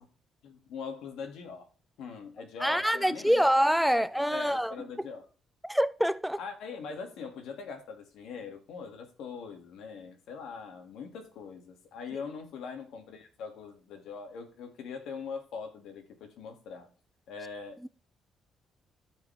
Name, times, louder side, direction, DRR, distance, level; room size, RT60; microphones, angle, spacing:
voice 1, 0.4-1.7 2.0-3.5 3.9-5.3 6.4-16.9 17.3-17.9, left 5 dB, 85° left, 2.2 m, -42 dB
voice 2, 2.6-5.1 5.6-6.4 12.1-12.2, equal, ahead, 0.5 m, -26 dB
14.5 x 5.0 x 3.4 m
cardioid pair, 90°, 0 cm